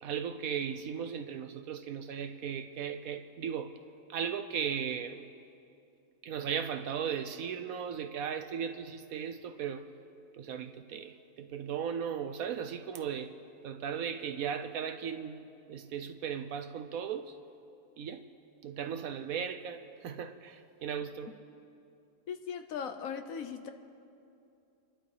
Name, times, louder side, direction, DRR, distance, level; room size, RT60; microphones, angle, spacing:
voice 1, 0.0-3.7 4.1-5.3 6.2-9.9 10.4-13.3 13.6-17.3 18.0-18.2 18.6-21.4, right 7 dB, 70° right, 9 dB, 0.9 m, -37 dB
voice 2, 22.3-23.7, left 7 dB, 65° left, 8 dB, 1.0 m, -38 dB
29.5 x 11.5 x 3.3 m, 2.7 s
omnidirectional pair, 1.8 m